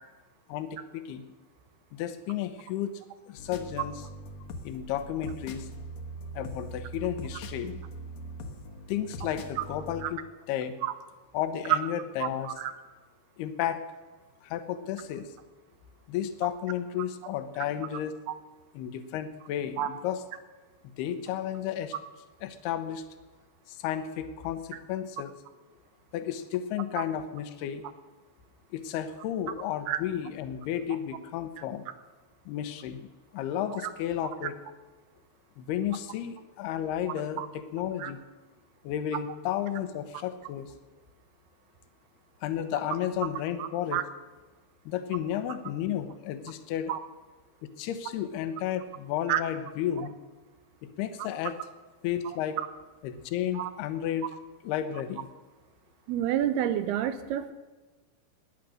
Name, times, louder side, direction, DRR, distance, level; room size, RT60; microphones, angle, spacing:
voice 1, 0.5-1.2 1.9-3.0 3.3-4.0 4.6-5.7 6.3-7.8 8.9-10.2 10.5-10.8 11.3-12.5 13.4-13.8 14.4-15.3 16.1-18.2 18.7-20.2 21.0-21.9 22.4-23.0 23.7-25.3 26.1-27.8 28.7-31.9 32.5-33.1 33.3-34.6 35.6-38.2 38.8-40.7 42.4-44.0 44.9-46.9 47.6-50.1 51.0-51.5 52.0-52.6 53.0-54.3 54.6-55.3, left 10 dB, 85° left, 10 dB, 3.0 m, -32 dB
sound 1, 3.4-10.1, right 1 dB, 65° left, 1.7 m, -41 dB
voice 2, 43.6-44.0 46.9-47.0 49.3-49.4 53.6-53.7 56.1-57.5, right 11 dB, 85° right, 11 dB, 2.8 m, -29 dB
17.5 x 10.5 x 6.4 m, 1.3 s
omnidirectional pair, 4.5 m